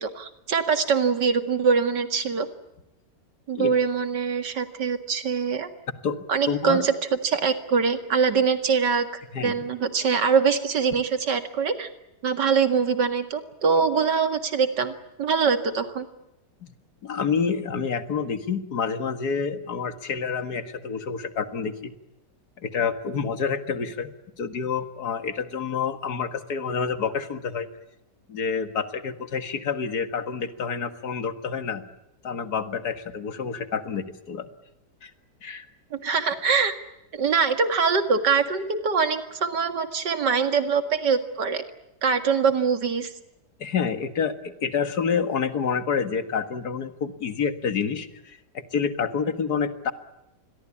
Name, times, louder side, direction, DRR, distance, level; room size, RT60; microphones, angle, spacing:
voice 1, 0.0-2.5 3.5-5.7 6.3-6.9 7.2-11.9 12.2-16.1 35.9-36.8 37.1-41.6 42.0-43.1, right 5 dB, 85° right, 9 dB, 2.6 m, -23 dB
voice 2, 6.5-6.8 9.3-9.5 16.6-16.7 17.0-21.9 22.6-24.1 24.4-27.7 28.3-31.8 32.2-34.5 35.0-35.1 35.4-35.7 43.6-49.9, left 6 dB, 65° left, 10 dB, 2.3 m, -28 dB
27.5 x 22.5 x 8.6 m, 0.89 s
omnidirectional pair, 1.8 m